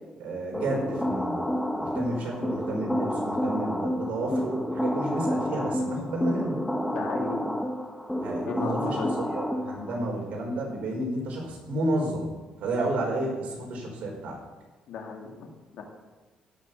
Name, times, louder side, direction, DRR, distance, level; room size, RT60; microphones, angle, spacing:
voice 1, 0.2-1.5 1.8-6.6 8.2-12.3 12.6-14.4, right 1 dB, 75° right, 0 dB, 4.6 m, -31 dB
sound 1, 0.5-10.0, equal, 5° left, 1.2 m, -29 dB
voice 2, 6.9-7.5 8.5-9.2 14.9-15.8, left 4 dB, 75° left, 1 dB, 2.5 m, -35 dB
16.5 x 6.9 x 6.8 m, 1.2 s
cardioid pair, 145°, 2 cm